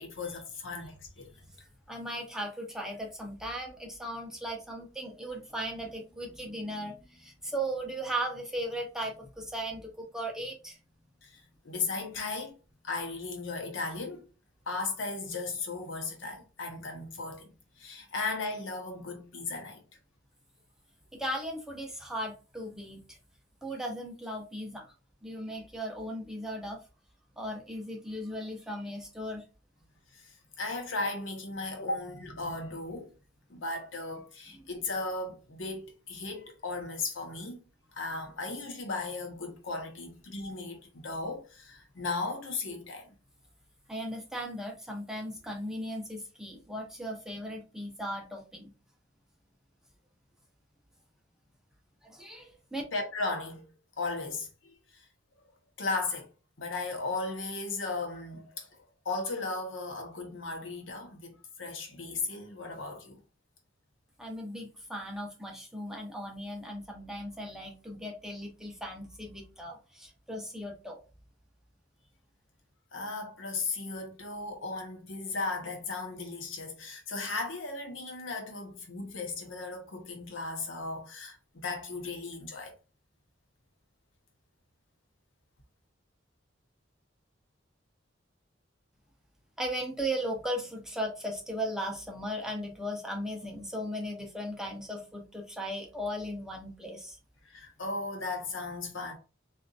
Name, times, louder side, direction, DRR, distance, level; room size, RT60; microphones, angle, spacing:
voice 1, 0.0-1.4 11.2-12.5 12.8-14.3 14.7-19.8 30.1-33.1 33.5-37.6 37.9-43.1 52.9-53.7 54.0-55.1 55.4-55.5 55.8-56.3 56.6-63.2 72.9-82.7 97.4-99.1, left 3 dB, 80° left, 0.9 m, -36 dB
voice 2, 1.9-10.8 21.2-23.2 23.6-24.9 25.2-26.8 27.4-29.4 43.9-48.7 52.0-52.8 64.2-71.0 89.6-97.2, equal, 5° right, 0.7 m, -37 dB
3.7 x 2.6 x 2.4 m
head